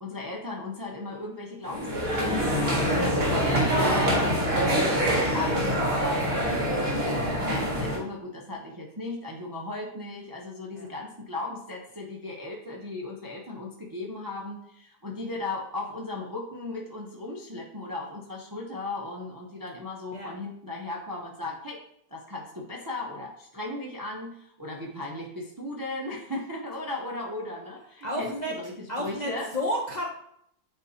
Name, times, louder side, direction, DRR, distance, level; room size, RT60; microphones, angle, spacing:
voice 1, 0.0-6.3 6.7-21.8 22.1-28.7 29.0-29.5, left 2 dB, 25° right, -1 dB, 0.5 m, -36 dB
sound 1, 1.6-8.0, equal, 65° right, 2.3 m, -25 dB
voice 2, 28.0-28.5 28.9-30.0, equal, 40° left, -1 dB, 0.6 m, -32 dB
8.9 x 4.1 x 2.8 m, 0.72 s
omnidirectional pair, 1.6 m